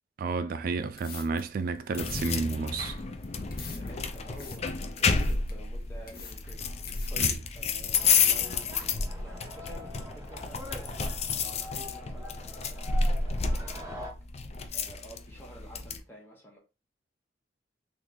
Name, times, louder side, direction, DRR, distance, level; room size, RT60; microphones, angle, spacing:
voice 1, 0.2-3.0 7.2-7.3, right 4 dB, 50° right, 0.3 m, -31 dB
sound 1, 0.8-7.3, left 6 dB, 55° left, 0.9 m, -48 dB
sound 2, 2.0-16.0, left 5 dB, 35° left, 0.4 m, -30 dB
voice 2, 3.7-11.0 11.4-14.1 14.4-16.6, right 1 dB, 10° left, 0.9 m, -50 dB
sound 3, 7.9-14.1, left 1 dB, 15° right, 0.8 m, -45 dB
3.0 x 2.6 x 3.7 m
head